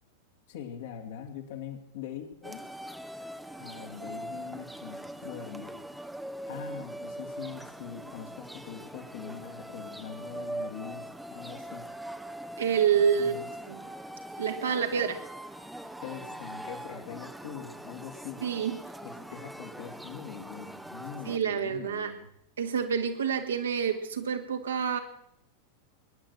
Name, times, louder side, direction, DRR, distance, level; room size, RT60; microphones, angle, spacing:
voice 1, 0.5-2.6 3.6-5.8 6.5-11.8 13.2-13.5 16.0-18.4 19.0-22.3, left 8 dB, 55° left, 5 dB, 2.2 m, -42 dB
sound 1, 2.4-21.4, right 1 dB, 5° right, 0.8 m, -42 dB
voice 2, 12.6-13.3 13.7-13.8 14.4-15.2 18.4-18.7 21.3-22.1 22.6-25.0, right 7 dB, 65° right, 5 dB, 1.8 m, -27 dB
21.5 x 10.5 x 6.2 m, 0.71 s
figure-of-eight pair, 90°, 0 cm